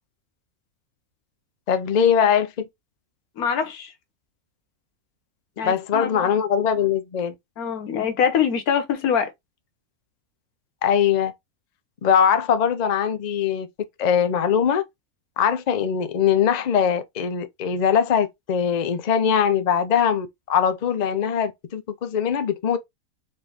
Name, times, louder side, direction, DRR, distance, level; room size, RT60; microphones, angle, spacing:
voice 1, 1.7-2.7 5.6-7.3 10.8-11.3 12.0-13.7 14.0-14.8 15.4-22.8, left 8 dB, 50° left, 0.5 m, -21 dB
voice 2, 3.4-3.9 5.6-6.3 7.6-9.3, left 7 dB, 90° left, 1.4 m, -24 dB
4.3 x 3.1 x 3.3 m
omnidirectional pair, 1.5 m